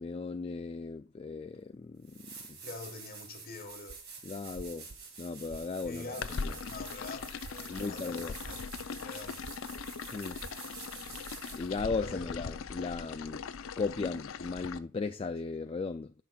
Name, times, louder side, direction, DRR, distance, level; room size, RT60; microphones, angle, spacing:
voice 1, 0.0-2.6 4.2-4.9 5.2-6.5 7.7-8.4 10.1-10.4 11.5-13.5 13.8-16.1, left 4 dB, 30° left, 0.3 m, -37 dB
sound 1, 1.5-1.6 2.0-11.8 14.6-14.7, right 5 dB, 55° right, 2.3 m, -48 dB
voice 2, 2.6-4.0 5.8-6.3 6.7-8.6 9.0-9.5 12.0-12.3, left 3 dB, 50° left, 1.5 m, -45 dB
sound 2, 3.9-4.1 4.5-6.0 6.4-6.9 7.4-7.9 8.4-9.1 9.4-10.0 10.3-10.5, right 2 dB, 35° right, 0.5 m, -48 dB
sound 3, 6.2-14.8, left 5 dB, 85° left, 0.5 m, -40 dB
12.5 x 5.8 x 2.3 m
head